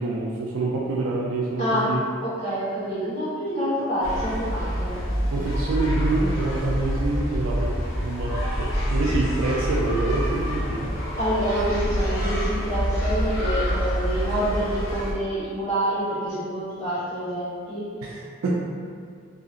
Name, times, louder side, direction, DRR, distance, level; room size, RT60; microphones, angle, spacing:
voice 1, 0.0-2.0 5.3-11.0 18.0-18.5, right 2 dB, 90° right, -4 dB, 0.4 m, -27 dB
voice 2, 2.2-5.0 11.2-17.8, right 1 dB, 40° left, -15 dB, 1.2 m, -27 dB
sound 1, 4.0-15.1, equal, 75° left, 0.6 m, -26 dB
2.7 x 2.7 x 2.5 m, 2.2 s
head